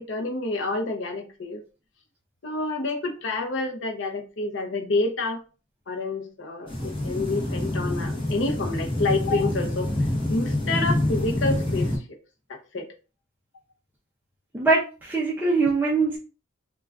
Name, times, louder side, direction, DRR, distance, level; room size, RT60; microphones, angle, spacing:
voice 1, 0.0-1.6 2.4-5.4 5.9-9.9 10.3-12.0 12.5-12.9, left 2 dB, 60° left, 0.6 m, -28 dB
sound 1, 6.7-12.0, left 1 dB, 25° left, 0.7 m, -27 dB
voice 2, 14.5-16.2, right 3 dB, 10° right, 0.4 m, -22 dB
2.4 x 2.3 x 3.3 m
head